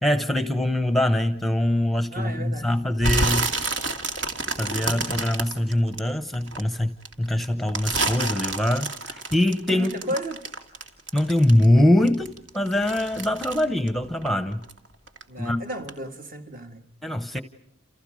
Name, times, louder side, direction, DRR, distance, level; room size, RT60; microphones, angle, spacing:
voice 1, 0.0-3.5 4.6-9.9 11.1-12.3 12.5-14.6 15.4-15.6 17.0-17.4, left 1 dB, ahead, 0.9 m, -23 dB
voice 2, 2.1-2.7 9.7-10.4 15.3-16.9, right 1 dB, 45° right, 1.9 m, -34 dB
sound 1, 3.0-6.6 7.0-11.8 12.1-14.8 15.1-15.5 15.9-16.0, right 3 dB, 70° right, 2.4 m, -28 dB
29.5 x 29.0 x 5.1 m
head